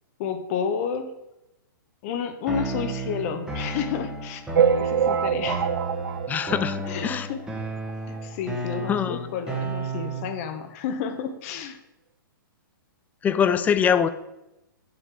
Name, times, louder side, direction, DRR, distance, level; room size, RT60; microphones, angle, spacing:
voice 1, 0.2-1.1 2.0-4.4 4.7-5.7 6.8-7.5 8.1-11.8, left 7 dB, 40° left, 8 dB, 1.3 m, -31 dB
sound 1, 2.5-10.5, right 2 dB, 5° right, 1.6 m, -33 dB
sound 2, 4.6-7.4 7.9-8.0 8.2-8.3 8.6-8.7 9.6-9.7 10.1-10.2, right 7 dB, 80° right, 0.5 m, -25 dB
voice 2, 6.3-7.3 8.9-9.2 13.2-14.1, left 8 dB, 15° left, 13 dB, 0.5 m, -23 dB
8.0 x 5.2 x 7.6 m, 0.89 s
hypercardioid pair, 140°, 11 cm